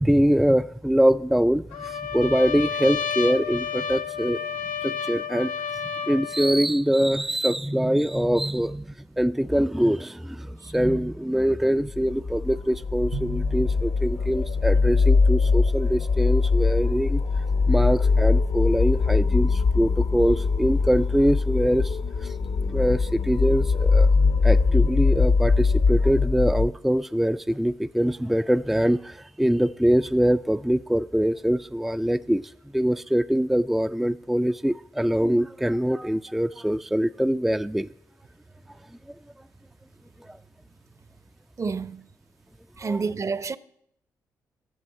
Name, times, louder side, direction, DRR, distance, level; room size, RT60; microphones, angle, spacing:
voice 1, 0.0-4.4 4.8-5.5 6.1-8.9 9.2-17.2 17.7-22.3 22.7-24.1 24.4-32.4 32.7-37.9 42.8-43.0, equal, 5° right, 0.4 m, -23 dB
Trumpet, 1.7-6.6, left 7 dB, 85° left, 0.7 m, -31 dB
sound 1, 11.9-26.7, left 4 dB, 70° left, 1.1 m, -22 dB
Drum, 13.1-15.3, right 5 dB, 90° right, 2.4 m, -40 dB
voice 2, 41.6-42.1 42.8-43.6, right 4 dB, 40° right, 0.7 m, -29 dB
11.0 x 7.4 x 8.6 m
hypercardioid pair, 45°, 8 cm